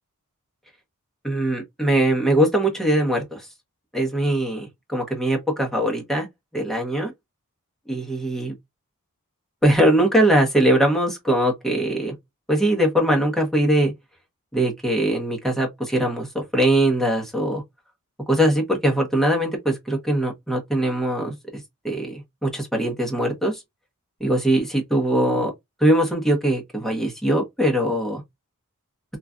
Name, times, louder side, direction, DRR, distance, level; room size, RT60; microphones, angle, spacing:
voice 1, 1.2-3.4 3.9-6.3 6.5-7.1 7.9-8.5 9.6-12.1 12.5-13.9 14.5-17.6 18.3-23.6 24.2-25.5 25.8-28.2, right 1 dB, ahead, 1.0 m, -21 dB
3.1 x 2.5 x 2.3 m
head